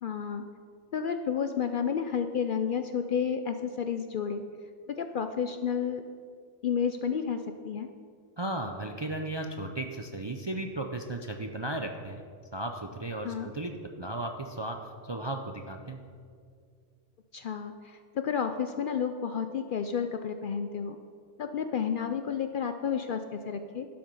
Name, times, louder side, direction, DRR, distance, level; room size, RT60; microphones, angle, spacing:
voice 1, 0.0-0.4 0.9-4.4 5.0-6.0 6.6-7.4 7.6-7.9 13.2-13.5 17.3-21.0 21.4-23.9, left 7 dB, 60° left, 7 dB, 0.6 m, -31 dB
voice 2, 8.4-12.2 12.5-16.0, right 1 dB, 35° right, 4 dB, 0.4 m, -35 dB
11.5 x 7.8 x 5.4 m, 2.2 s
omnidirectional pair, 1.2 m